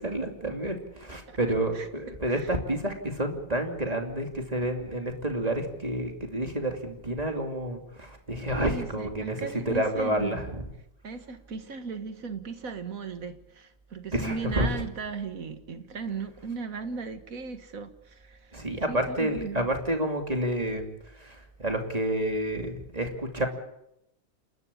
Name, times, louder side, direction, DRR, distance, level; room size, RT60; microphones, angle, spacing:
voice 1, 0.0-9.4 9.7-10.6 14.1-14.7 18.5-20.9 21.2-23.5, right 1 dB, 30° right, 4 dB, 2.8 m, -29 dB
voice 2, 1.7-2.5 8.6-10.5 11.0-19.7, right 5 dB, 80° right, 9 dB, 2.0 m, -37 dB
29.0 x 12.5 x 8.6 m, 0.82 s
omnidirectional pair, 1.4 m